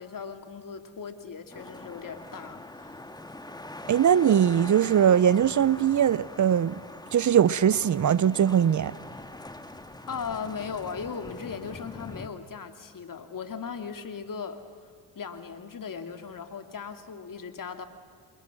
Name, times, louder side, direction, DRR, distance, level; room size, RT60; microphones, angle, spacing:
voice 1, 0.0-3.1 10.1-14.6 15.1-17.8, left 6 dB, 45° left, 2.8 m, -38 dB
sound 1, 1.5-12.3, left 1 dB, 10° left, 1.8 m, -43 dB
voice 2, 3.9-6.8 7.1-8.9, right 9 dB, 40° right, 0.8 m, -21 dB
29.5 x 27.0 x 6.2 m
supercardioid pair, 65°, 44 cm